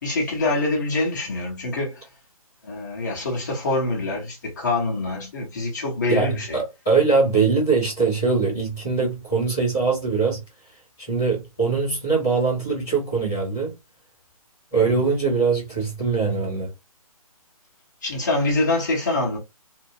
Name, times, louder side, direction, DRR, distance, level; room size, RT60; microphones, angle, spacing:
voice 1, 0.0-2.1 2.6-6.6 14.7-14.8 18.0-19.4, left 2 dB, 30° left, 1.2 m, -25 dB
voice 2, 6.1-10.4 11.1-13.7 14.7-16.7, right 4 dB, 5° left, 0.4 m, -22 dB
2.7 x 2.3 x 2.6 m
hypercardioid pair, 175°, 19 cm